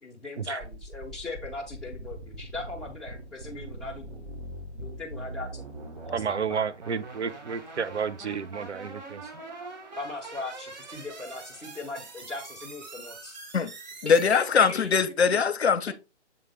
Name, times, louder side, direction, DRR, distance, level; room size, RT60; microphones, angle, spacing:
voice 1, 0.0-4.3 4.7-6.7 9.2-9.3 10.0-13.4 14.0-14.9 15.9-16.0, left 3 dB, ahead, 0.8 m, -39 dB
sound 1, 0.6-15.0, right 2 dB, 40° right, 1.3 m, -43 dB
voice 2, 6.1-9.2, right 6 dB, 75° right, 0.7 m, -31 dB
voice 3, 14.0-15.9, left 6 dB, 65° left, 0.7 m, -22 dB
7.2 x 3.8 x 3.4 m
figure-of-eight pair, 140°, 35 cm